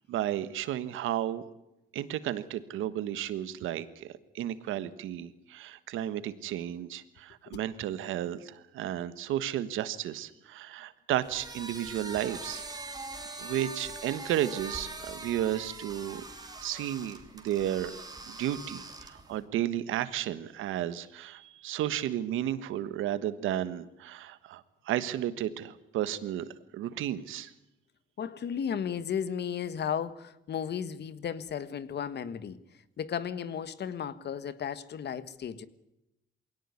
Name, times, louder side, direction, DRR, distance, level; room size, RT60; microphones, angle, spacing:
voice 1, 0.1-1.4 1.9-12.7 13.4-16.2 16.6-17.9 18.3-26.4 26.7-27.5, right 12 dB, 85° right, 1.4 m, -33 dB
sound 1, 11.2-19.4, right 2 dB, 20° right, 3.1 m, -43 dB
voice 2, 28.2-35.7, left 8 dB, 60° left, 1.5 m, -35 dB
22.0 x 17.5 x 9.8 m
cardioid pair, 90°, 20 cm